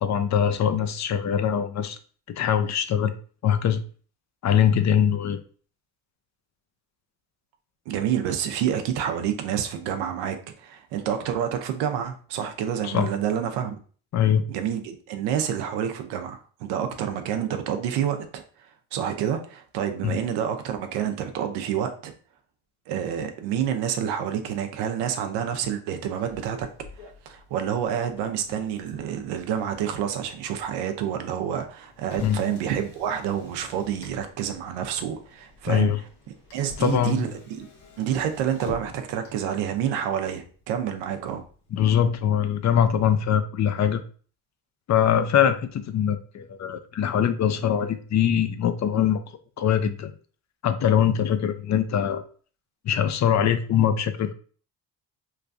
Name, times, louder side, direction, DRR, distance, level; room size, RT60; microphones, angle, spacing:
voice 1, 0.0-2.0 2.3-3.2 3.4-3.8 4.4-5.4 12.8-13.1 14.1-14.5 20.0-20.2 32.2-32.4 35.7-36.0 36.8-37.3 41.7-44.0 44.9-49.2 49.6-50.1 50.6-52.2 52.8-54.3, left 9 dB, 45° left, 10 dB, 0.5 m, -22 dB
voice 2, 7.9-13.7 14.5-22.1 22.9-26.7 27.0-36.0 36.5-37.3 37.6-37.7 38.0-41.4, right 9 dB, 85° right, 6 dB, 0.6 m, -28 dB
Motor vehicle (road), 26.2-43.3, left 3 dB, 75° left, 1.1 m, -49 dB
3.1 x 2.3 x 2.5 m, 0.42 s
supercardioid pair, 60°, 40 cm